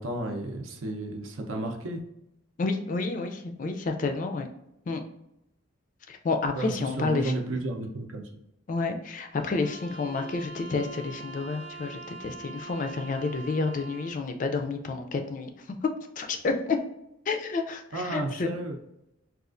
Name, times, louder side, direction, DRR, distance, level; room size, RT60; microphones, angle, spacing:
voice 1, 0.0-2.0 6.6-8.3 17.9-18.7, right 2 dB, 80° right, 3 dB, 0.6 m, -32 dB
voice 2, 2.6-4.5 4.9-5.0 6.1-7.3 8.7-16.8 17.3-18.5, left 3 dB, 40° left, 6 dB, 0.3 m, -30 dB
sound 1, 9.3-14.3, right 3 dB, 45° right, 0.8 m, -44 dB
4.1 x 2.4 x 2.5 m, 0.85 s
head